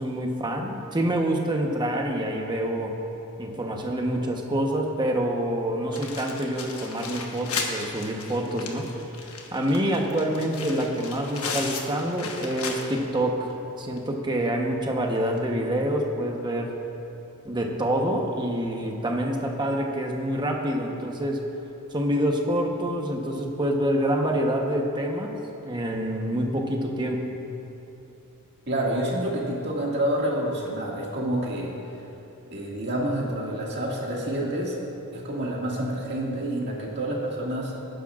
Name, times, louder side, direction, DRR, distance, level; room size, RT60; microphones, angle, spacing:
voice 1, 0.0-3.0 3.4-8.9 9.5-13.5 13.8-16.7 17.4-21.4 21.9-25.4 25.6-27.2, right 1 dB, 20° right, 1 dB, 1.0 m, -26 dB
sound 1, 5.9-13.2 13.5-13.6 14.0-14.1 15.3-15.4, left 4 dB, 70° left, 1.2 m, -35 dB
voice 2, 28.7-31.7 32.5-34.8 35.1-37.7, right 1 dB, 50° right, -3 dB, 2.0 m, -28 dB
19.0 x 10.0 x 2.5 m, 2.9 s
head